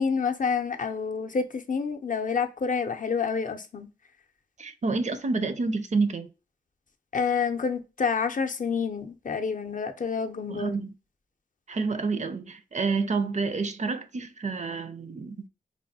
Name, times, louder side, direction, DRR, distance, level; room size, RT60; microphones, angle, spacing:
voice 1, 0.0-3.9 7.1-10.8, left 5 dB, 50° left, 0.5 m, -28 dB
voice 2, 4.6-6.3 10.5-10.9 11.7-15.4, right 4 dB, 40° right, 0.4 m, -29 dB
3.3 x 2.3 x 2.7 m
cardioid pair, 40°, 18 cm